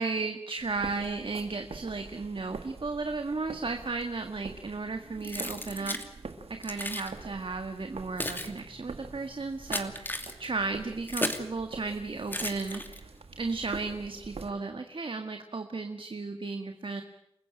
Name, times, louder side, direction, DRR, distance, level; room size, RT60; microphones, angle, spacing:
voice 1, 0.0-6.0 6.5-13.1 13.4-17.0, right 3 dB, 60° right, 6 dB, 1.8 m, -34 dB
sound 1, 0.6-14.5, right 4 dB, 75° right, 1.9 m, -46 dB
Keys jangling, 5.2-6.1 6.6-7.1 7.8-11.5 12.3-13.2, left 1 dB, 20° left, 2.7 m, -35 dB
29.0 x 15.0 x 9.0 m, 0.85 s
cardioid pair, 45°, 10 cm